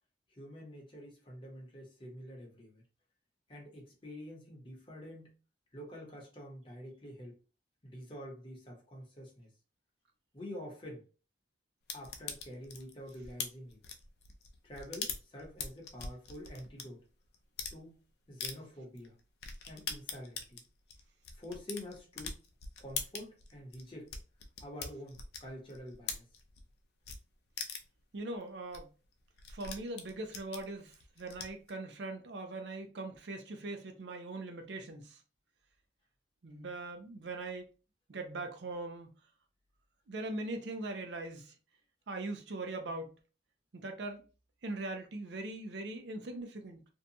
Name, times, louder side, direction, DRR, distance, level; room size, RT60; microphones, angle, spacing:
voice 1, 0.4-2.8 3.5-5.4 5.7-7.4 7.8-9.5 10.3-11.0 11.9-13.8 14.6-17.0 17.7-18.0 18.3-19.2 19.6-20.6 21.3-22.4 22.8-24.2 24.6-26.3, equal, 30° left, 0.8 m, -47 dB
sound 1, 11.9-16.8 17.3-17.8 18.4-18.5 19.0-19.1 19.4-26.7 27.0-27.2 27.6-28.0 28.4-28.5 28.7-28.8 29.0-31.7, left 6 dB, 65° left, 0.4 m, -42 dB
voice 2, 28.1-28.9 29.5-35.2 36.4-37.7 38.1-39.1 40.1-41.6 42.1-43.2 43.7-44.2 44.6-46.8, right 2 dB, 75° right, 0.5 m, -41 dB
2.7 x 2.2 x 2.7 m
head